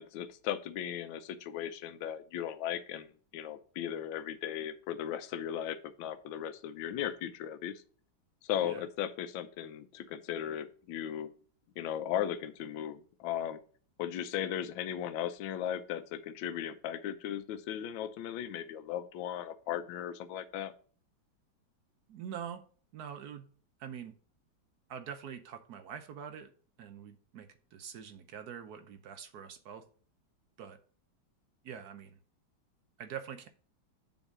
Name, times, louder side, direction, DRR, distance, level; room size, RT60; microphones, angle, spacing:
voice 1, 0.0-7.8 8.4-11.3 11.8-13.6 14.0-20.7, left 10 dB, 75° left, 10 dB, 1.4 m, -37 dB
voice 2, 22.1-22.6 22.9-23.5 23.8-24.1 24.9-26.5 26.8-29.8 30.6-30.8 31.6-32.2 33.0-33.5, right 8 dB, 65° right, 9 dB, 1.0 m, -44 dB
7.2 x 4.0 x 5.8 m, 0.43 s
omnidirectional pair, 2.2 m